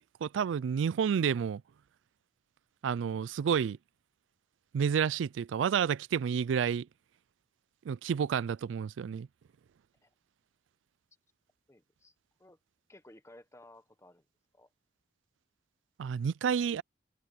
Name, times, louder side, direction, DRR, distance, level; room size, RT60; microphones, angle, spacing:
voice 1, 0.0-1.6 2.8-3.8 4.7-6.9 7.9-9.3 16.0-16.8, right 7 dB, 85° right, 0.3 m, -30 dB
voice 2, 11.7-12.6 12.9-14.3 14.5-14.7, left 1 dB, 15° left, 1.2 m, -57 dB
head